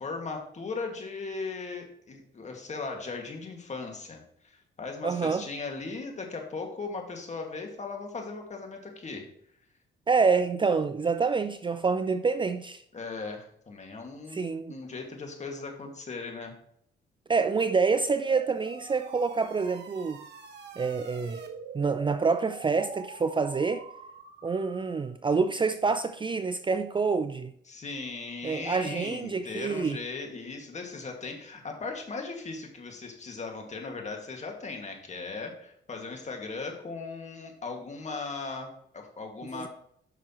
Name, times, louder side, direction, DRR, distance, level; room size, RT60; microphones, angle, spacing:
voice 1, 0.0-9.3 12.9-14.4 14.7-16.5 27.7-39.7, left 4 dB, 35° left, 2.1 m, -38 dB
voice 2, 5.0-5.4 10.1-12.8 14.3-14.8 17.3-20.2 20.8-21.4 21.7-23.8 24.4-27.5 28.4-30.0 39.5-39.7, right 4 dB, 25° right, 0.5 m, -27 dB
sound 1, 17.6-25.1, right 5 dB, 60° right, 1.5 m, -45 dB
9.8 x 6.1 x 3.1 m
cardioid pair, 90°, 20 cm